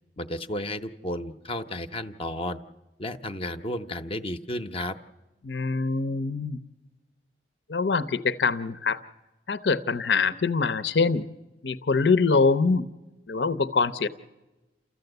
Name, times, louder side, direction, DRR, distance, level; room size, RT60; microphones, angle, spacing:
voice 1, 0.2-2.6 3.0-5.0, left 1 dB, 30° left, 8 dB, 0.7 m, -33 dB
voice 2, 5.4-6.6 7.7-9.0 9.5-11.3 11.6-12.9 13.3-14.1, left 4 dB, 75° left, 14 dB, 0.7 m, -24 dB
29.5 x 14.0 x 8.0 m, 1.1 s
head